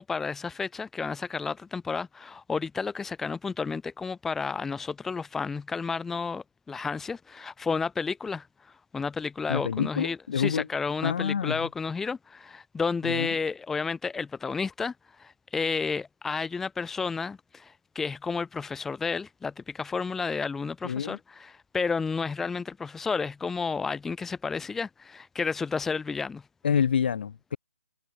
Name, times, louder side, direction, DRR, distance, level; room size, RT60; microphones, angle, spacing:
voice 1, 0.0-26.4, left 5 dB, 5° left, 2.8 m, -31 dB
voice 2, 9.5-10.7 11.0-11.6 13.0-13.3 20.8-21.2 26.6-27.6, left 7 dB, 40° left, 6.9 m, -27 dB
hypercardioid pair, 175°, 8 cm